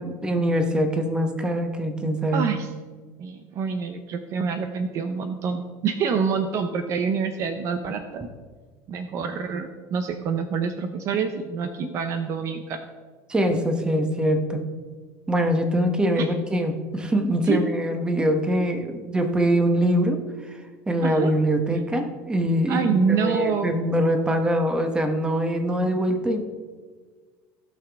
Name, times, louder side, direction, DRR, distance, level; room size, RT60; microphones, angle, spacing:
voice 1, 0.0-2.4 11.8-11.9 13.3-14.6 15.3-20.6 20.9-26.4, equal, 10° right, 6 dB, 1.1 m, -23 dB
voice 2, 2.3-2.7 3.2-8.3 8.9-12.8 16.2-16.3 17.5-17.6 18.8-19.0 21.0-21.3 22.7-23.7, right 6 dB, 45° right, 8 dB, 0.7 m, -26 dB
15.5 x 5.9 x 3.5 m, 1.5 s
cardioid pair, 130°, 7 cm